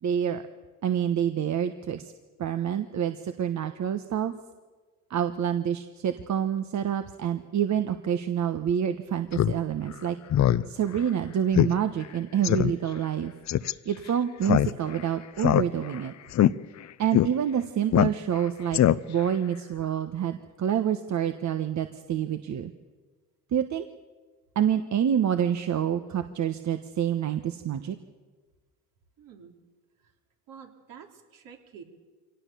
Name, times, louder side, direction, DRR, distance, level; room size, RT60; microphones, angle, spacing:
voice 1, 0.0-0.4 0.8-2.1 2.4-4.3 5.1-10.2 10.7-13.3 13.8-16.1 17.0-18.8 19.1-22.7 23.5-23.9 24.5-28.0, right 9 dB, 55° right, 9 dB, 1.3 m, -27 dB
Speech synthesizer, 9.3-9.5 9.9-10.0 10.3-10.6 11.0-11.1 11.5-11.7 12.0-12.1 12.4-12.7 13.5-13.7 14.4-15.0 15.4-16.0 16.3-16.5 17.1-17.3 17.9-18.4 18.7-19.3, left 12 dB, 50° left, 0.7 m, -21 dB
voice 2, 29.2-29.5 30.0-30.1 30.5-31.8, right 7 dB, 70° right, 3 dB, 3.6 m, -48 dB
24.0 x 18.0 x 7.0 m, 1.3 s
supercardioid pair, 70°, 34 cm